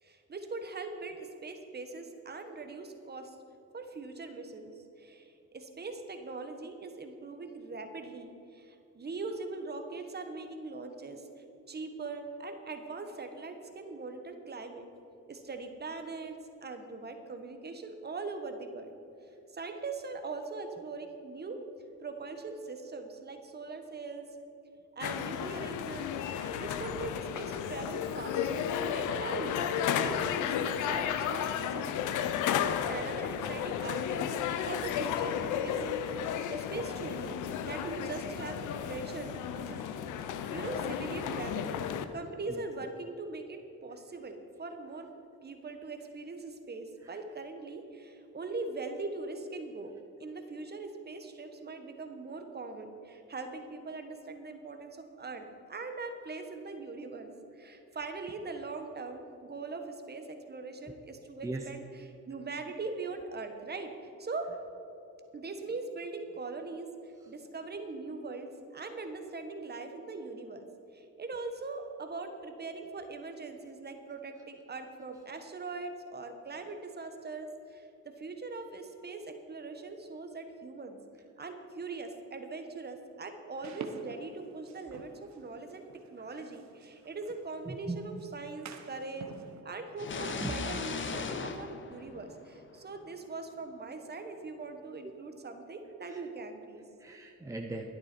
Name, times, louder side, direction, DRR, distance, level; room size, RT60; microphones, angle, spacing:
voice 1, 0.0-3.3 3.7-11.3 11.7-14.9 15.3-18.9 19.5-21.6 22.0-24.2 24.9-28.7 28.9-32.0 32.9-35.4 35.6-35.8 36.1-39.8 40.5-41.7 42.1-45.1 45.4-49.9 50.2-64.5 65.3-70.6 70.9-77.9 78.2-81.0 81.4-89.3 89.6-96.8, right 3 dB, 35° right, 6 dB, 1.4 m, -41 dB
sound 1, 25.0-42.0, left 8 dB, 85° left, 0.7 m, -33 dB
sound 2, 83.6-89.6, right 5 dB, 65° right, 1.1 m, -49 dB
voice 2, 87.7-88.0 90.4-90.6 95.0-95.1 96.0-96.2 97.0-97.8, right 2 dB, 10° right, 2 dB, 0.9 m, -39 dB
sound 3, 90.0-92.8, left 5 dB, 40° left, 0.9 m, -38 dB
12.5 x 10.5 x 4.5 m, 2.9 s
cardioid pair, 90°, 30 cm